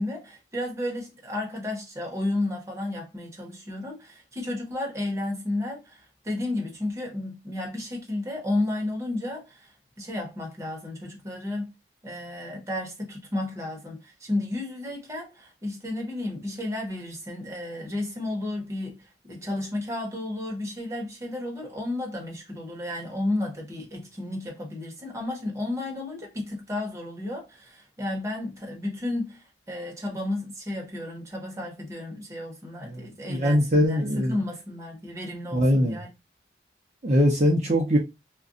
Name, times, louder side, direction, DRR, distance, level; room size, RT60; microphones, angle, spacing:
voice 1, 0.0-9.7 10.0-11.7 12.0-36.1, left 1 dB, 15° right, 0.9 m, -32 dB
voice 2, 32.8-34.4 35.5-36.0 37.0-38.0, equal, 40° right, 0.6 m, -22 dB
2.4 x 2.2 x 3.7 m
head